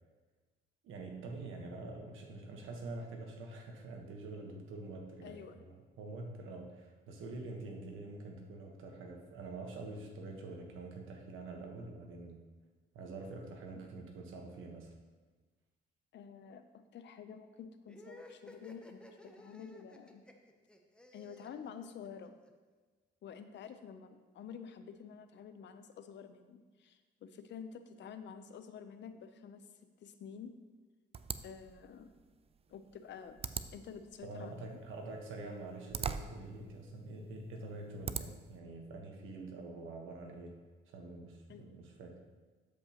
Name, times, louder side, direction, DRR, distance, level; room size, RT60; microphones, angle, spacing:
voice 1, 0.8-12.4 12.9-14.9 34.2-40.5 40.9-42.2, right 2 dB, 85° right, 2 dB, 1.3 m, -46 dB
voice 2, 5.2-5.6 16.1-16.6 16.9-20.2 21.1-22.4 23.2-29.7 30.0-30.5 31.4-32.1 32.7-33.4 33.7-34.5 41.5-41.7, left 7 dB, 65° left, 9 dB, 0.6 m, -49 dB
sound 1, 17.9-22.5, left 1 dB, 5° left, 0.8 m, -55 dB
sound 2, 31.1-38.6, right 6 dB, 30° right, 0.4 m, -44 dB
12.5 x 5.3 x 3.0 m, 1.3 s
cardioid pair, 90°, 20 cm